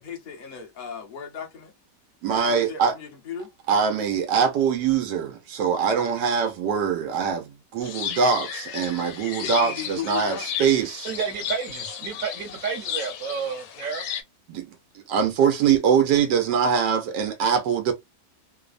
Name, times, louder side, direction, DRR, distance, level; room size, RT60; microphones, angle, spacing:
voice 1, 0.0-1.7 2.3-3.5 9.4-10.5, left 7 dB, 40° left, 0.8 m, -36 dB
voice 2, 2.2-2.9 3.7-11.1 14.5-14.7 15.1-17.9, right 7 dB, 90° right, 1.3 m, -23 dB
sound 1, 7.8-14.2, left 9 dB, 90° left, 1.3 m, -34 dB
voice 3, 11.0-14.0, right 6 dB, 60° right, 1.1 m, -31 dB
3.2 x 2.0 x 2.4 m
omnidirectional pair, 1.8 m